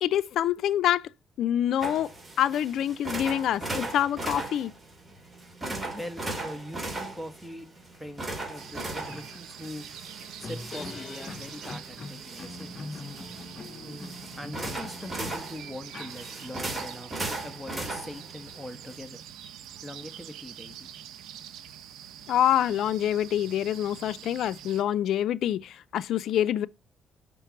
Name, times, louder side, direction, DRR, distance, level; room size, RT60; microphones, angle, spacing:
voice 1, 0.0-1.1 1.4-2.1 2.4-4.7 22.3-26.7, left 11 dB, 75° left, 0.4 m, -26 dB
sound 1, 1.8-19.0, right 2 dB, 20° right, 2.6 m, -38 dB
voice 2, 5.6-7.7 7.9-9.8 10.4-13.0 13.8-19.2 19.8-20.9, left 1 dB, ahead, 1.4 m, -42 dB
sound 2, 8.6-24.8, right 10 dB, 90° right, 0.8 m, -45 dB
sound 3, 8.7-16.8, left 3 dB, 45° left, 0.9 m, -43 dB
5.8 x 4.5 x 5.7 m
cardioid pair, 90°, 0 cm